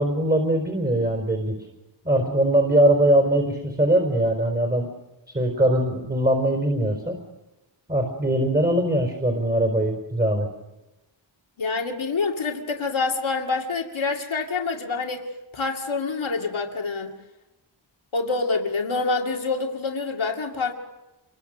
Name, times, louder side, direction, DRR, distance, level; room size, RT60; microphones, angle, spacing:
voice 1, 0.0-1.6 2.0-4.9 5.3-7.2 7.9-10.5, right 1 dB, 20° right, 3 dB, 4.5 m, -21 dB
voice 2, 11.6-17.1 18.1-20.7, left 4 dB, 85° left, 1 dB, 2.3 m, -26 dB
27.5 x 23.5 x 6.6 m, 1.0 s
wide cardioid pair, 80°, 46 cm